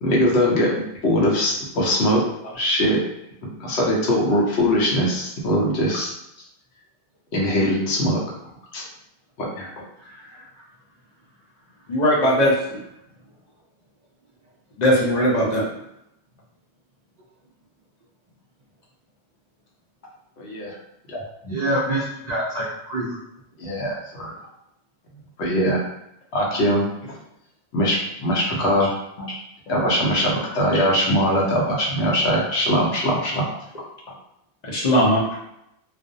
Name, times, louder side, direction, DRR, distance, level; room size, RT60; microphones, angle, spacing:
voice 1, 0.0-2.2 2.6-3.0 3.4-6.1 7.3-8.2 8.7-8.8 9.6-9.7 20.4-20.8 21.1-21.5 23.6-24.3 25.4-25.8 26.3-26.9 27.7-28.9 29.7-33.5, equal, 70° left, -3 dB, 0.9 m, -21 dB
voice 2, 10.0-10.4 21.5-23.1, right 1 dB, 55° right, -7 dB, 0.5 m, -26 dB
voice 3, 11.9-12.5 14.8-15.6 34.6-35.2, equal, 50° left, -5 dB, 0.6 m, -18 dB
2.4 x 2.0 x 2.5 m, 0.80 s
omnidirectional pair, 1.1 m